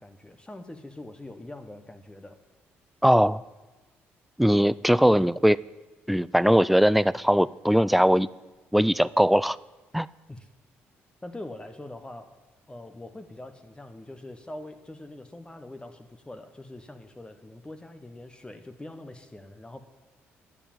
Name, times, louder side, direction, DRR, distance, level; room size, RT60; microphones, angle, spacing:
voice 1, 0.0-2.4 5.0-5.3 10.3-10.5 11.2-12.4 12.7-19.8, left 1 dB, 15° left, 8 dB, 1.1 m, -43 dB
voice 2, 3.0-3.4 4.4-5.6 6.1-8.3 8.7-9.6 9.9-10.1, equal, ahead, 20 dB, 0.3 m, -20 dB
10.0 x 7.0 x 9.0 m, 1.2 s
hypercardioid pair, 55°, 6 cm